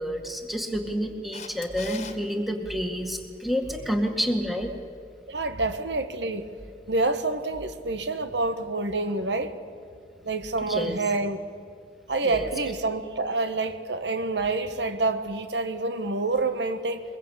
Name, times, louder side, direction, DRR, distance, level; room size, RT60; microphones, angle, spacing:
voice 1, 0.0-4.7 10.6-11.0 12.2-12.5, equal, ahead, 2.0 m, -29 dB
Camera, 1.3-2.2 8.9-9.0, left 6 dB, 40° left, 1.7 m, -40 dB
voice 2, 5.3-6.5 6.9-9.6 10.2-11.4 12.1-17.0, right 3 dB, 85° right, 1.4 m, -27 dB
23.5 x 22.0 x 8.3 m
head